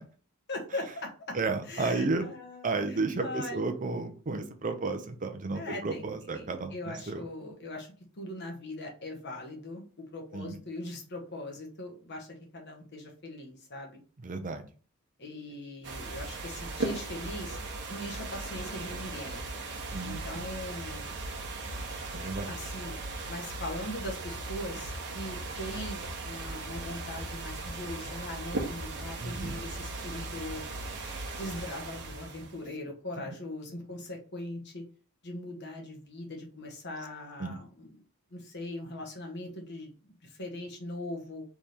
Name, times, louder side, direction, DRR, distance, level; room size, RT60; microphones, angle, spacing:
voice 1, 0.5-1.4 1.7-3.7 5.5-6.1 6.3-14.0 15.2-17.6 17.9-19.4 20.0-21.2 22.5-22.9 23.3-30.6 31.4-34.8 35.2-38.0 38.3-41.4, left 1 dB, 55° left, 2 dB, 1.2 m, -40 dB
voice 2, 1.3-2.3 2.6-7.2 10.3-10.6 14.2-14.7 19.9-20.4 22.1-22.5 29.2-29.6 37.4-37.6, right 3 dB, 40° right, 7 dB, 0.6 m, -32 dB
sound 1, 15.8-32.6, right 2 dB, 55° right, 1.0 m, -38 dB
3.5 x 3.2 x 4.2 m, 0.39 s
head